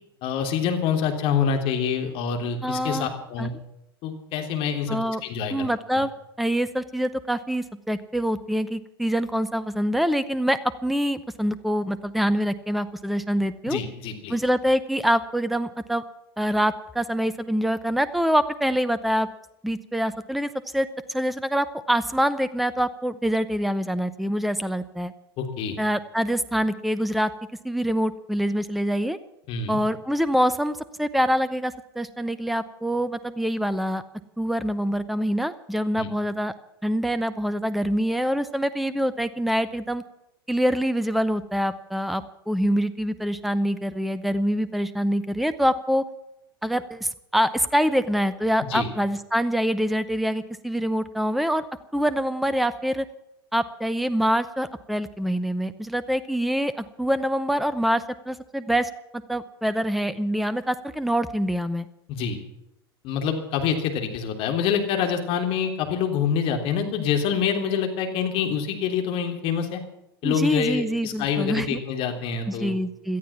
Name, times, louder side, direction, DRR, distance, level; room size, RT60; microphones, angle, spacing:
voice 1, 0.2-3.5 4.0-5.7 13.7-14.3 25.4-25.8 29.5-29.8 36.0-36.1 48.6-48.9 62.1-62.4 63.0-69.8 70.2-72.7, left 7 dB, 45° left, 4 dB, 3.4 m, -26 dB
voice 2, 2.6-3.1 3.4-3.5 4.9-5.2 5.5-6.1 6.4-13.8 14.3-16.0 16.4-19.3 19.6-25.1 25.8-27.3 27.6-29.2 29.7-34.0 34.4-36.5 36.8-40.0 40.5-46.1 46.6-51.7 51.9-53.1 53.5-61.9 70.2-71.8 72.5-73.2, equal, ahead, 15 dB, 0.9 m, -25 dB
18.0 x 13.5 x 5.9 m, 0.84 s
figure-of-eight pair, 85°, 13 cm